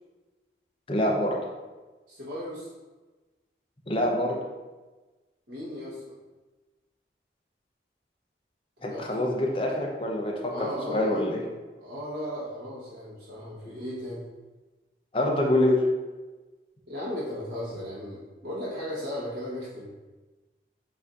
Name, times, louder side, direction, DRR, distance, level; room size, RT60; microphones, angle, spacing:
voice 1, 0.9-1.4 3.9-4.4 8.8-11.4 15.1-15.8, left 1 dB, 30° left, -1 dB, 0.6 m, -25 dB
voice 2, 2.1-2.7 5.5-6.1 8.8-9.2 10.5-11.3 11.8-14.3 16.9-19.9, equal, 85° right, -8 dB, 1.1 m, -36 dB
6.8 x 2.7 x 2.4 m, 1.2 s
head